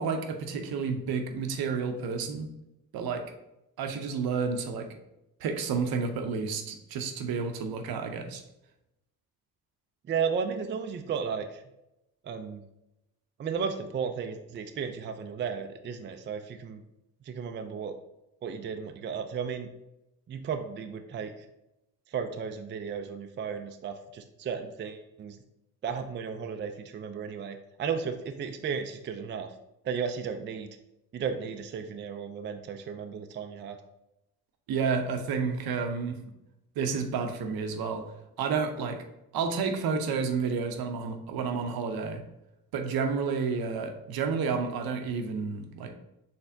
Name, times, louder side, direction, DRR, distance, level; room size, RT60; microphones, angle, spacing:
voice 1, 0.0-2.5 2.9-3.2 3.8-4.9 5.4-8.4 34.7-36.2 36.8-38.0 38.4-39.0 39.3-42.2 42.7-45.9, right 5 dB, 70° right, 6 dB, 0.7 m, -30 dB
voice 2, 10.1-11.6 12.2-12.6 13.4-16.8 17.2-17.9 18.4-19.7 20.3-21.3 22.1-25.4 25.8-29.5 29.8-30.7 31.1-33.8, right 6 dB, 30° right, 6 dB, 0.4 m, -34 dB
4.2 x 3.4 x 2.7 m, 0.88 s
supercardioid pair, 65°, 38 cm